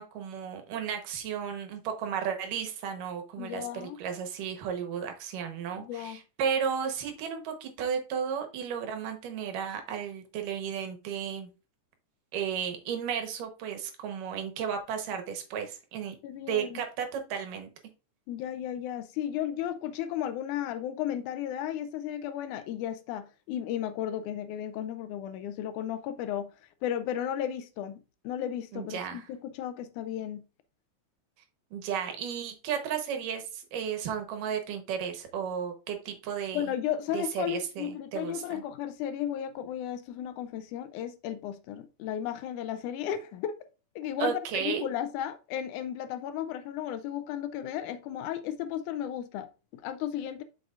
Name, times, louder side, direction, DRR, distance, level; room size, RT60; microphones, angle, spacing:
voice 1, 0.0-11.5 12.3-16.2 16.5-17.7 28.7-29.2 31.7-36.7 37.1-38.6 44.2-44.8, right 7 dB, 80° right, 2.7 m, -34 dB
voice 2, 3.4-4.0 5.8-6.2 16.2-16.8 18.3-26.5 26.8-30.4 36.5-43.6 44.0-50.4, left 10 dB, 80° left, 1.9 m, -34 dB
7.9 x 6.1 x 2.4 m
omnidirectional pair, 3.7 m